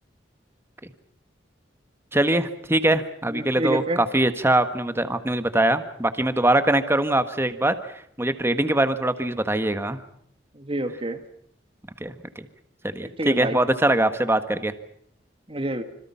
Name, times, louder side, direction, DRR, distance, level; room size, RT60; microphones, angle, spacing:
voice 1, 2.1-7.8 8.2-10.0 12.0-12.5 12.8-14.7, right 1 dB, 15° right, 9 dB, 1.6 m, -22 dB
voice 2, 3.3-4.0 10.6-11.2 13.0-13.6 15.5-15.8, right 1 dB, 30° right, 8 dB, 1.7 m, -28 dB
26.5 x 26.0 x 5.8 m, 0.65 s
head